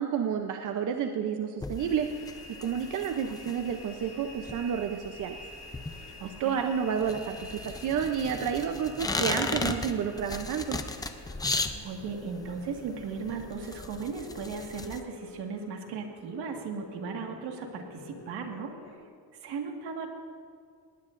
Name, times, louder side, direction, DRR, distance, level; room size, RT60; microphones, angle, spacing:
voice 1, 0.0-2.1 2.6-5.4 6.4-10.8, right 7 dB, 50° right, 5 dB, 0.7 m, -30 dB
sound 1, 1.6-15.0, left 3 dB, 10° left, 0.4 m, -36 dB
sound 2, 1.8-18.9, left 2 dB, 60° left, 4.3 m, -48 dB
voice 2, 6.2-6.7 11.8-19.0 19.4-20.1, right 5 dB, 80° right, 3 dB, 1.8 m, -37 dB
19.0 x 18.5 x 2.6 m, 2.1 s
cardioid pair, 165°, 39 cm